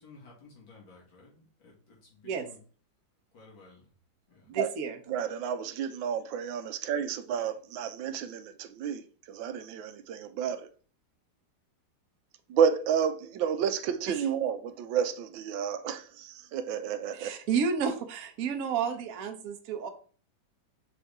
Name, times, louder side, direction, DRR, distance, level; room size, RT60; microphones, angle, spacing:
voice 1, 0.0-2.6 3.3-3.8 4.3-4.5, left 3 dB, 80° left, 3.0 m, -54 dB
voice 2, 4.5-4.9 17.2-19.9, right 6 dB, 55° right, 1.1 m, -31 dB
voice 3, 5.1-10.7 12.5-17.3, right 8 dB, 80° right, 1.3 m, -31 dB
6.5 x 4.1 x 3.5 m
omnidirectional pair, 2.1 m